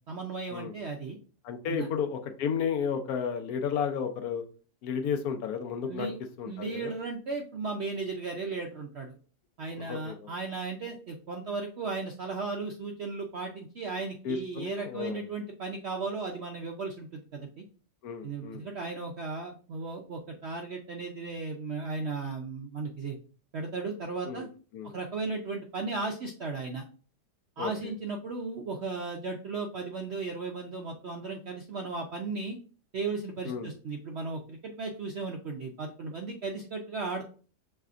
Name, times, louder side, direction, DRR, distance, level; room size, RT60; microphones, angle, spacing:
voice 1, 0.1-1.2 1.6-1.9 5.9-6.2 6.4-9.2 9.6-17.6 18.2-23.2 23.5-24.5 24.9-26.8 27.6-32.6 32.9-37.3, right 4 dB, 65° right, 2 dB, 0.6 m, -36 dB
voice 2, 1.4-4.4 4.8-6.1 6.4-6.9 9.8-10.3 14.2-15.2 18.0-18.6 24.3-24.5 24.7-24.9 27.6-27.7 33.4-33.7, left 7 dB, 70° left, 7 dB, 1.1 m, -32 dB
6.6 x 3.3 x 2.4 m, 0.40 s
omnidirectional pair, 1.7 m